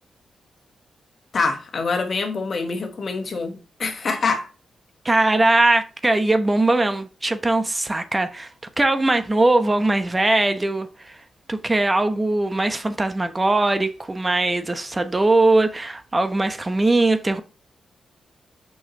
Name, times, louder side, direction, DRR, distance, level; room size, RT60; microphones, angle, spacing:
voice 1, 1.3-4.5, left 4 dB, 60° left, 1.4 m, -25 dB
voice 2, 5.0-8.5 8.8-11.2 11.5-17.4, right 2 dB, 25° right, 1.0 m, -20 dB
6.3 x 5.6 x 3.1 m
supercardioid pair, 50°, 0 cm